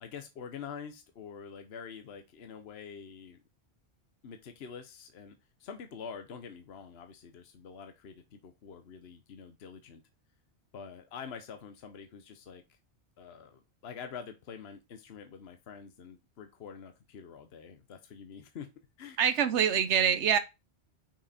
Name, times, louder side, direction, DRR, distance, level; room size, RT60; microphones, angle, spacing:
voice 1, 0.0-3.4 4.2-10.0 10.7-12.8 13.2-18.7 19.0-19.2, left 6 dB, 65° left, 1.1 m, -46 dB
voice 2, 19.2-20.4, right 8 dB, 90° right, 1.1 m, -25 dB
6.0 x 4.7 x 4.2 m
omnidirectional pair, 1.1 m